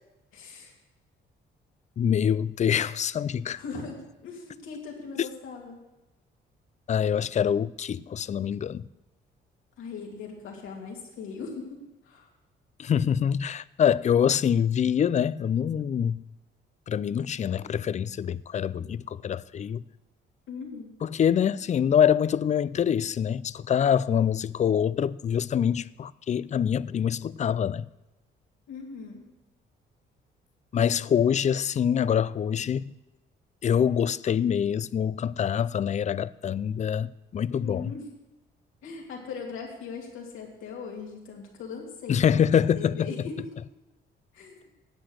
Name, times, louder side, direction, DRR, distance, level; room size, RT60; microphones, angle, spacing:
voice 1, 0.3-0.8 3.5-5.8 9.8-12.3 20.5-20.9 28.7-29.2 37.6-38.1 38.8-43.5 44.3-44.7, left 5 dB, 85° left, 2.8 m, -40 dB
voice 2, 2.0-3.6 6.9-8.8 12.8-16.2 16.9-19.8 21.0-27.8 30.7-32.9 33.6-37.9 42.1-43.1, left 8 dB, 35° left, 0.4 m, -25 dB
10.5 x 8.5 x 6.4 m
cardioid pair, 90°, 20 cm